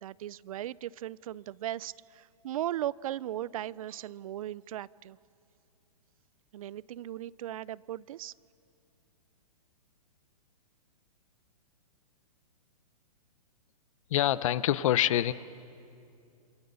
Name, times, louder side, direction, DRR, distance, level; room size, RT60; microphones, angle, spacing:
voice 1, 0.0-5.2 6.5-8.3, right 12 dB, 60° right, 22 dB, 0.5 m, -37 dB
voice 2, 14.1-15.3, left 12 dB, 55° left, 16 dB, 0.9 m, -25 dB
28.0 x 27.5 x 7.0 m, 2.5 s
hypercardioid pair, 140°, 20 cm